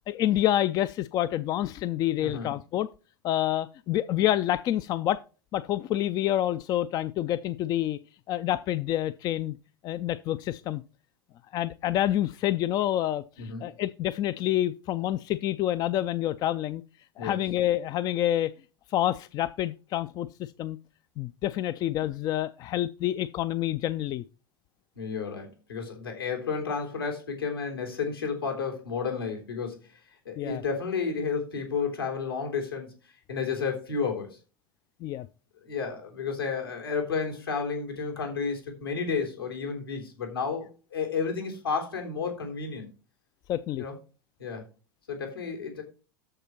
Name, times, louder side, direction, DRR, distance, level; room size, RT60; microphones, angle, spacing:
voice 1, 0.1-2.9 3.2-5.2 5.5-8.0 8.3-9.6 9.8-10.8 11.5-16.8 17.2-18.5 18.9-20.3 20.6-20.8 21.2-24.2 30.4-30.6 35.0-35.3 43.5-43.8, left 13 dB, 35° left, 0.4 m, -28 dB
voice 2, 2.2-2.5 13.4-13.7 17.2-17.4 25.0-29.8 30.3-32.9 33.3-34.4 35.6-42.9 43.8-44.0 44.4-44.6 45.1-45.8, left 5 dB, 75° left, 3.6 m, -31 dB
13.0 x 5.0 x 4.3 m
figure-of-eight pair, 85°, 12 cm